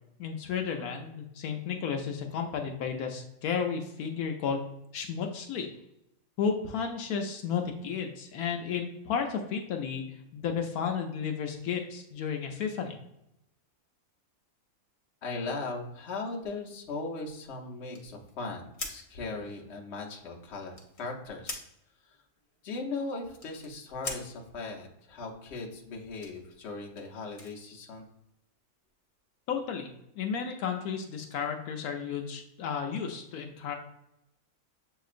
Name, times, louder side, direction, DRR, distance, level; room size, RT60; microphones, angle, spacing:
voice 1, 0.2-4.6 4.9-5.7 6.4-10.0 10.3-12.9 29.5-29.9 30.2-33.8, left 6 dB, 80° left, 4 dB, 1.1 m, -33 dB
voice 2, 15.2-21.6 22.0-22.2 22.6-28.1, left 3 dB, 55° left, -1 dB, 1.1 m, -38 dB
sound 1, 17.9-21.1 21.4-21.7 22.0-24.3 25.7-28.3, left 2 dB, 35° left, 0.6 m, -44 dB
7.2 x 2.9 x 2.4 m, 0.84 s
omnidirectional pair, 1.5 m